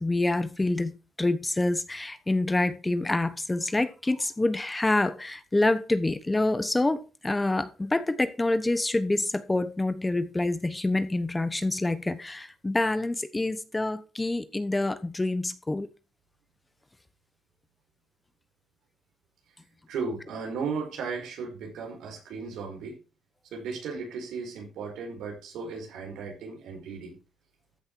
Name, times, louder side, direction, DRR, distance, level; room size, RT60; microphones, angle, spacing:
voice 1, 0.0-15.9, left 2 dB, 15° left, 1.1 m, -27 dB
voice 2, 19.9-23.0 23.5-27.1, right 5 dB, 80° right, 4.8 m, -35 dB
14.0 x 6.4 x 4.7 m
cardioid pair, 90°, 0 cm